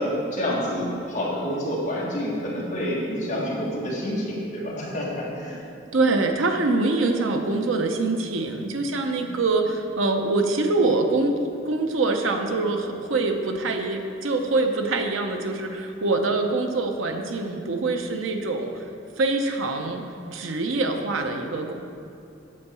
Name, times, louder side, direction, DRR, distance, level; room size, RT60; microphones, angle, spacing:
voice 1, 0.0-5.6 9.2-9.3, equal, 35° left, -5 dB, 1.8 m, -28 dB
voice 2, 5.9-11.4 11.6-18.8 19.2-20.0 20.3-21.7, right 3 dB, 90° right, 5 dB, 0.7 m, -24 dB
8.5 x 4.6 x 6.8 m, 2.5 s
head